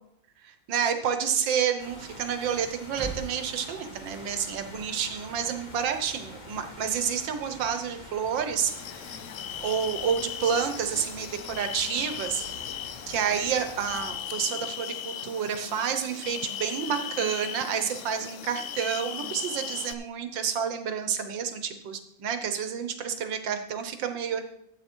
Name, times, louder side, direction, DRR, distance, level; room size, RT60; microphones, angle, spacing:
voice 1, 0.4-9.2 9.6-12.4 13.1-24.4, right 7 dB, 80° right, 8 dB, 1.8 m, -29 dB
sound 1, 1.8-14.1, left 2 dB, 25° left, 1.4 m, -46 dB
sound 2, 2.4-4.9 5.2-5.4, right 2 dB, ahead, 2.1 m, -43 dB
sound 3, 8.7-19.9, left 10 dB, 80° left, 0.6 m, -38 dB
12.5 x 8.2 x 4.5 m, 0.74 s
omnidirectional pair, 2.0 m